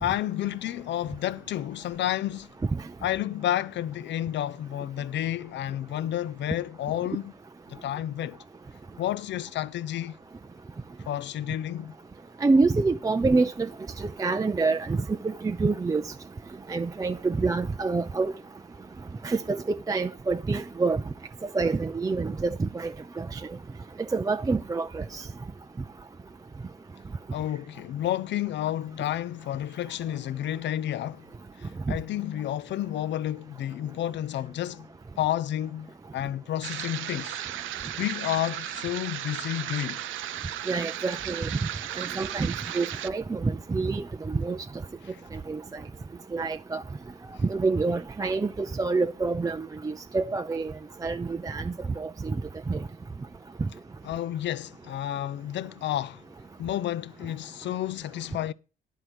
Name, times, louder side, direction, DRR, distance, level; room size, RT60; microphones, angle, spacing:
voice 1, 0.0-2.5 3.0-7.3 7.7-8.4 9.0-10.2 11.1-11.9 27.3-31.2 31.6-34.9 35.2-37.4 38.0-40.0 54.0-56.2 56.6-58.5, left 12 dB, 65° left, 0.6 m, -30 dB
voice 2, 12.4-13.7 14.0-16.0 16.7-18.3 19.2-21.0 21.5-22.9 23.2-23.4 24.1-25.3 31.9-32.0 40.7-41.5 42.0-44.6 45.3-45.6 46.3-46.8 47.4-50.7 51.0-52.4 52.7-52.8, right 3 dB, 15° right, 0.4 m, -27 dB
sound 1, 36.6-43.1, right 12 dB, 80° right, 0.6 m, -35 dB
11.5 x 4.5 x 7.9 m
cardioid pair, 90°, 20 cm